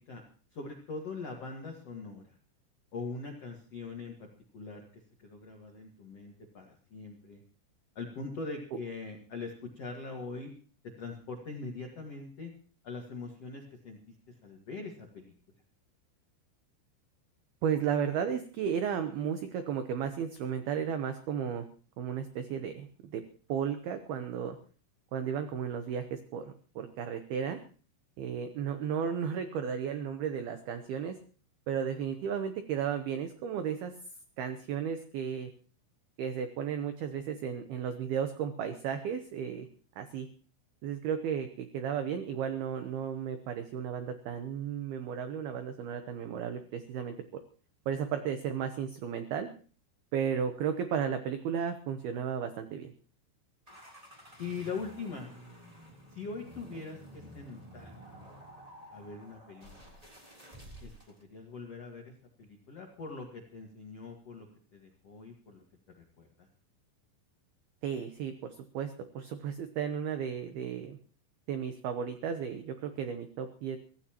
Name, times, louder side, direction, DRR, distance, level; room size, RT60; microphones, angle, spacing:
voice 1, 0.5-2.4 2.9-4.3 4.5-4.9 5.2-7.4 7.9-10.5 11.0-12.5 12.8-14.1 14.4-15.3 54.4-55.3 56.1-58.0 58.9-59.7 60.8-60.9 61.3-64.5 64.7-65.6 65.9-66.5, left 4 dB, 65° left, 1 dB, 1.5 m, -42 dB
voice 2, 17.6-21.7 22.0-23.2 23.5-24.6 25.1-27.6 28.2-31.2 31.7-33.9 34.4-35.5 36.2-39.7 40.0-40.3 40.8-47.2 47.9-49.5 50.1-52.9 67.8-71.0 71.5-73.8, right 8 dB, 80° right, 8 dB, 2.2 m, -34 dB
sound 1, 53.7-61.2, equal, 10° right, 2.6 m, -51 dB
23.5 x 15.5 x 3.0 m, 0.40 s
omnidirectional pair, 5.8 m